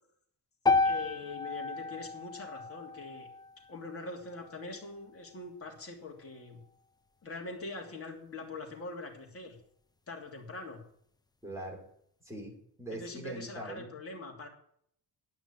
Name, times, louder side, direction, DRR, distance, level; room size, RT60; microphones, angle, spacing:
sound 1, 0.7-4.8, left 3 dB, 10° left, 0.6 m, -32 dB
voice 1, 0.8-3.3 3.7-6.6 7.2-9.6 10.1-10.8 12.9-14.5, left 3 dB, 35° left, 0 dB, 3.1 m, -43 dB
voice 2, 11.4-11.8 12.2-13.9, right 1 dB, 5° right, -1 dB, 3.7 m, -42 dB
12.0 x 6.0 x 8.7 m, 0.67 s
cardioid pair, 155°, 39 cm